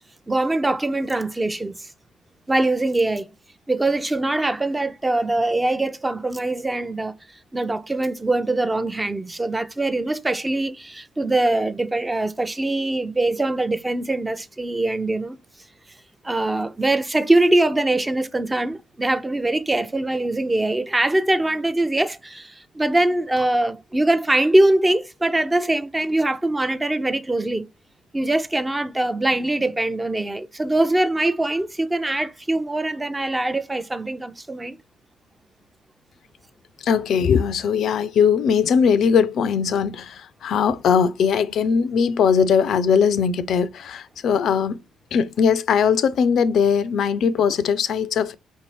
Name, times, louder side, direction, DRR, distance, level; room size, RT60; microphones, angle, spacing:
voice 1, 0.3-1.9 2.5-3.3 3.7-7.1 7.5-15.4 16.2-27.6 28.1-34.8, right 2 dB, 20° right, 0.5 m, -22 dB
voice 2, 36.8-44.8 45.1-48.3, left 6 dB, 60° left, 0.3 m, -20 dB
5.1 x 2.7 x 3.0 m
hypercardioid pair, 45°, 0 cm